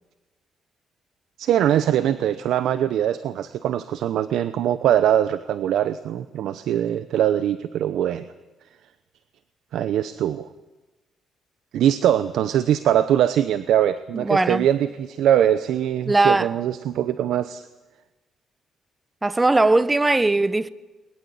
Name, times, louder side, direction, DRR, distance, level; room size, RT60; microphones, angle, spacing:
voice 1, 1.4-8.3 9.7-10.5 11.7-17.7, right 10 dB, 80° right, 0.8 m, -22 dB
voice 2, 14.1-14.6 16.1-16.5 19.2-20.7, right 2 dB, 15° right, 1.0 m, -19 dB
22.0 x 21.5 x 8.6 m
cardioid pair, 90°, 0 cm